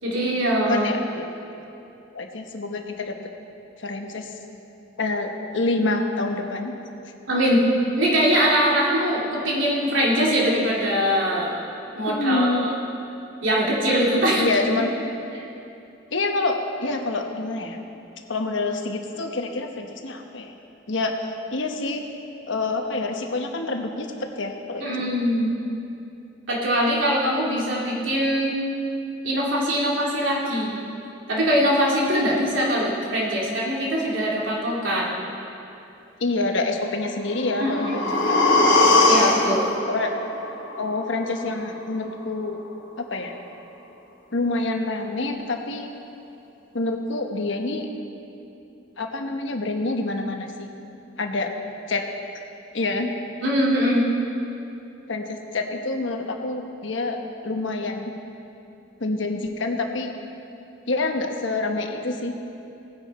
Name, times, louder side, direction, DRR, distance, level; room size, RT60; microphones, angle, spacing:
voice 1, 0.0-0.9 7.3-7.6 8.0-11.5 11.9-12.7 13.4-14.5 14.8-14.9 24.8-25.5 26.5-28.6 29.2-30.7 31.3-35.1 37.6-38.1 39.0-39.7 53.4-54.1, equal, 80° right, -5 dB, 2.8 m, -22 dB
voice 2, 0.6-1.2 2.1-3.1 3.8-4.3 5.0-6.7 12.1-12.7 14.4-14.9 16.1-17.8 18.3-20.5 20.9-22.0 22.5-24.1 24.4-25.1 36.2-38.6 39.9-40.1 40.8-42.6 43.0-43.3 44.3-45.9 46.7-47.9 49.0-50.7 51.2-51.5 51.9-52.0 52.7-53.1 55.1-57.2 57.4-58.1 59.0-60.1 60.9-62.3, left 2 dB, 75° left, 4 dB, 1.1 m, -27 dB
sound 1, 37.3-41.3 41.7-41.8, left 2 dB, 90° left, 2.2 m, -21 dB
17.5 x 9.7 x 4.3 m, 2.8 s
head